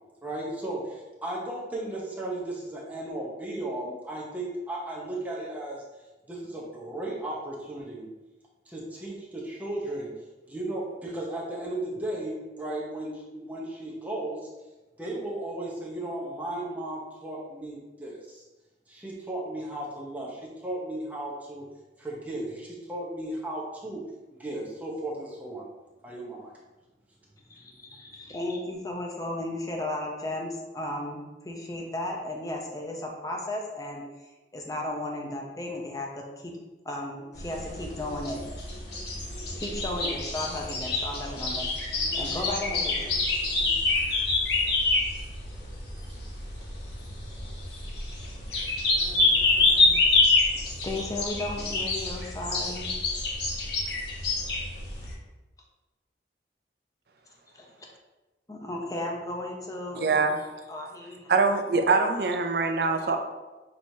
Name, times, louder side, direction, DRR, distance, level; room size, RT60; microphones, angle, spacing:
voice 1, 0.2-5.8 6.3-8.1 8.7-10.1 10.5-14.5 15.0-18.4 18.9-21.6 22.0-24.0 24.3-25.7 26.0-26.5, right 1 dB, 10° right, -4 dB, 0.8 m, -35 dB
voice 2, 27.5-34.0 34.5-36.5 36.8-38.4 39.5-43.1 50.8-52.9 57.5-57.7 58.5-60.1 60.7-61.3 62.8-63.2, left 1 dB, 20° left, 0 dB, 0.6 m, -35 dB
sound 1, 37.3-55.1, left 3 dB, 65° left, 1.1 m, -27 dB
voice 3, 60.0-60.4 61.3-63.2, right 4 dB, 60° right, 5 dB, 0.5 m, -23 dB
6.1 x 3.1 x 2.7 m, 1.1 s
head